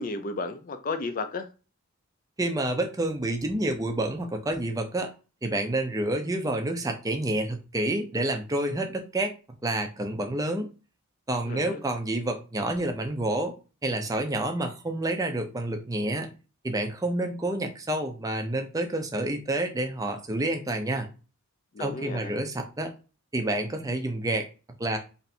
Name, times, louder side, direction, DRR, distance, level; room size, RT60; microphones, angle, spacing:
voice 1, 0.0-1.5 11.5-11.8 21.7-22.3, left 3 dB, 40° left, 0.4 m, -33 dB
voice 2, 2.4-5.1 5.4-9.4 9.6-10.7 11.3-13.6 13.8-16.3 16.6-21.1 21.8-22.9 23.3-24.5 24.8-25.0, right 1 dB, 15° right, 0.5 m, -28 dB
3.3 x 2.6 x 4.2 m
head